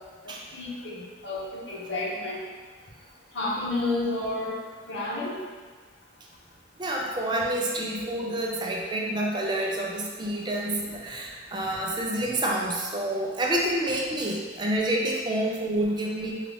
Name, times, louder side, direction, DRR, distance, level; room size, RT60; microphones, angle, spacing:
voice 1, 0.5-2.4 3.3-4.6 4.9-5.3 12.2-12.3, left 2 dB, 70° left, -6 dB, 0.9 m, -30 dB
voice 2, 6.8-16.4, right 1 dB, 25° right, -2 dB, 0.4 m, -28 dB
3.7 x 2.3 x 3.4 m, 1.5 s
head